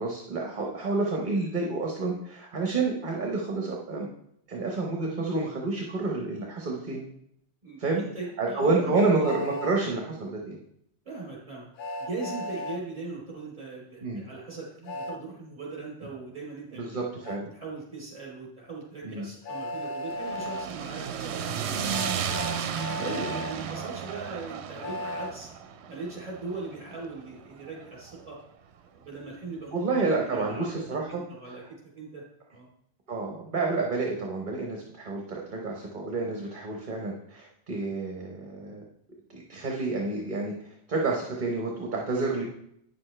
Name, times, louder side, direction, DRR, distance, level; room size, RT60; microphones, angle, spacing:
voice 1, 0.0-4.1 4.5-7.0 7.8-8.0 8.4-10.6 14.0-14.2 16.7-17.5 19.0-19.3 23.0-23.3 29.7-31.2 31.5-31.7 33.1-38.8 39.3-40.5 40.9-42.5, right 3 dB, 50° right, 0 dB, 1.1 m, -29 dB
voice 2, 7.6-9.3 11.0-11.7 12.0-17.0 17.5-22.3 23.0-25.5 25.9-28.4 28.9-31.6 32.0-32.2 32.5-32.7, right 3 dB, 30° right, -4 dB, 3.5 m, -40 dB
Train, 8.9-9.7 11.8-12.8 14.9-15.2 17.2-17.4 19.4-20.7 21.9-23.5 24.8-25.3, left 1 dB, 60° left, 0.7 m, -35 dB
sound 1, 20.1-28.3, right 7 dB, 80° right, 0.9 m, -34 dB
9.1 x 7.1 x 3.3 m, 0.72 s
omnidirectional pair, 1.1 m